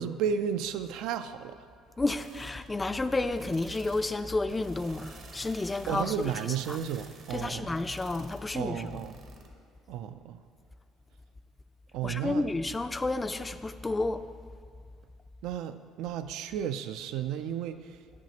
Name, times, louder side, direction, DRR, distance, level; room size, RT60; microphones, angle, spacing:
voice 1, 0.0-1.6 5.9-7.7 8.5-9.2 9.9-10.4 11.9-12.4 15.4-18.0, right 8 dB, 75° right, 0.3 m, -33 dB
voice 2, 2.0-6.3 6.7-6.8 7.3-9.0 12.0-14.3, left 2 dB, 20° left, 0.4 m, -31 dB
sound 1, 2.2-9.5, right 4 dB, 60° right, 0.9 m, -51 dB
10.5 x 6.1 x 2.8 m
supercardioid pair, 75°, 0 cm